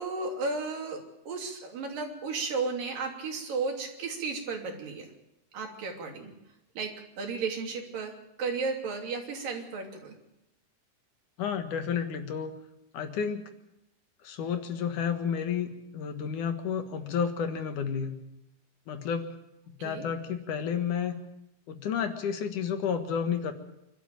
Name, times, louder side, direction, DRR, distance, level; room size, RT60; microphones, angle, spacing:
voice 1, 0.0-5.1 5.5-6.3 6.8-6.9 7.2-8.1 8.4-10.2 19.8-20.1, right 4 dB, 85° right, 2 dB, 4.7 m, -34 dB
voice 2, 11.4-12.6 12.9-13.4 14.2-18.2 18.9-19.3 19.8-21.2 21.7-23.5, left 7 dB, 70° left, 7 dB, 3.0 m, -31 dB
25.5 x 12.5 x 9.0 m, 0.89 s
omnidirectional pair, 3.8 m